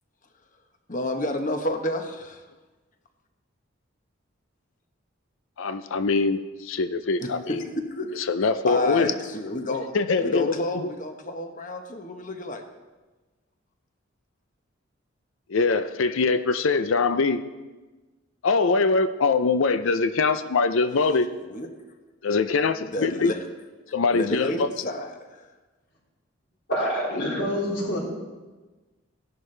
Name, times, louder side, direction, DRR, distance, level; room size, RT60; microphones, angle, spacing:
voice 1, 0.9-2.4 7.2-8.2 8.7-9.9 10.2-12.6 21.3-21.7 22.8-23.4 24.1-25.5, left 1 dB, 40° left, 5 dB, 1.1 m, -30 dB
voice 2, 5.6-7.6 8.3-9.1 9.9-10.9 15.5-17.4 18.4-21.3 22.2-23.3 23.9-24.7, left 4 dB, 80° left, 11 dB, 0.5 m, -23 dB
voice 3, 26.7-28.0, equal, 60° left, -9 dB, 3.6 m, -26 dB
15.5 x 11.0 x 3.3 m, 1.2 s
head